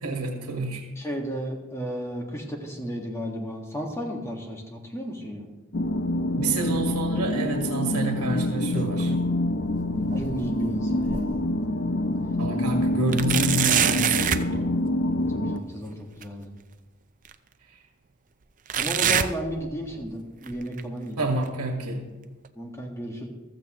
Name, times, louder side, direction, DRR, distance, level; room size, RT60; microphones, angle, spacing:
voice 1, 0.0-0.8 6.4-9.2 12.4-14.7 17.7-17.8 21.2-22.1, right 2 dB, 85° right, 1 dB, 1.8 m, -28 dB
voice 2, 1.0-5.5 9.9-11.4 15.2-16.5 18.8-21.2 22.6-23.3, equal, 15° left, 1 dB, 1.8 m, -34 dB
sound 1, 5.7-15.6, left 1 dB, 50° left, 0.6 m, -26 dB
sound 2, 8.3-9.3 9.6-11.5 12.0-12.1 13.1-14.5 16.2-16.3 17.2-17.3 18.7-20.1 20.4-20.8 21.5-21.6 22.4-22.5, right 8 dB, 35° right, 0.6 m, -27 dB
15.0 x 13.5 x 3.1 m, 1.2 s
head